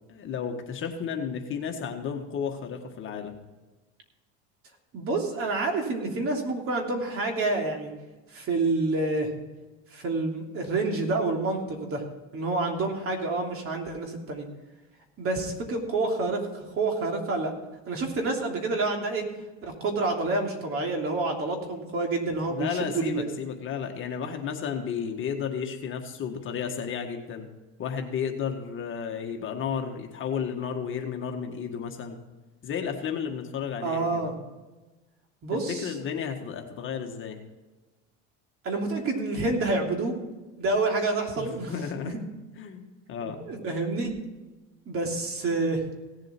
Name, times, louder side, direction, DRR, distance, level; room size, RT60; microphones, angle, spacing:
voice 1, 0.1-3.3 22.5-27.5 27.8-32.2 32.6-34.3 35.7-37.4 41.4-42.1 42.6-43.4, left 7 dB, 40° left, 3 dB, 1.7 m, -33 dB
voice 2, 4.9-7.9 8.3-9.3 9.9-12.0 12.3-14.5 15.2-17.5 17.9-19.3 19.6-23.2 33.8-34.3 35.4-35.9 38.6-40.1 40.6-41.7 42.0-42.2 43.2-44.1 44.9-45.8, right 3 dB, 45° right, 2 dB, 3.0 m, -28 dB
17.0 x 7.6 x 4.5 m, 1.2 s
supercardioid pair, 125°, 32 cm